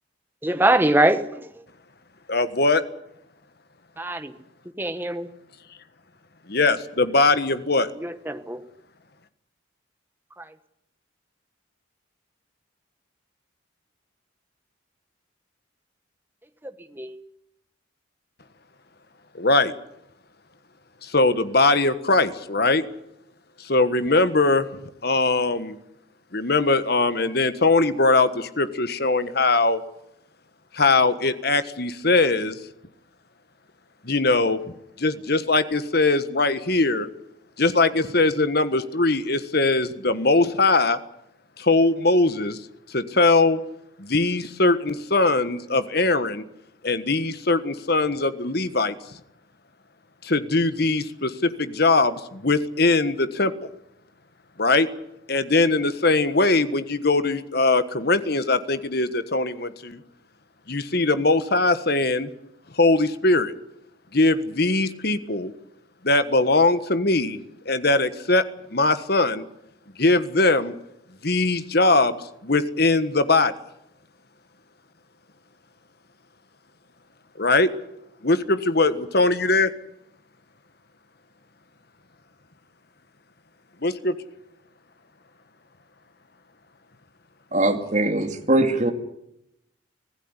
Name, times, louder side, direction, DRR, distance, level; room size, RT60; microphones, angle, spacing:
voice 1, 0.4-1.4 4.0-4.3 4.8-5.3 8.3-8.6 17.0-17.1, right 1 dB, 10° right, 9 dB, 1.3 m, -22 dB
voice 2, 2.3-2.8 6.5-7.9 19.3-19.7 21.0-22.8 23.6-25.8 26.3-29.8 30.7-32.6 34.0-34.6 35.0-37.1 37.6-41.0 41.6-42.6 42.9-43.6 44.0-46.4 46.8-48.9 50.2-53.5 54.6-54.9 55.3-60.0 60.7-62.3 62.7-63.5 64.1-65.5 66.0-67.4 67.6-68.4 68.7-69.4 70.0-70.7 71.2-73.5 77.4-77.7 78.2-79.7 83.8-84.1, left 3 dB, 50° left, 12 dB, 1.5 m, -21 dB
voice 3, 87.5-88.9, right 1 dB, 35° right, 5 dB, 2.6 m, -21 dB
25.0 x 16.0 x 9.8 m, 0.81 s
head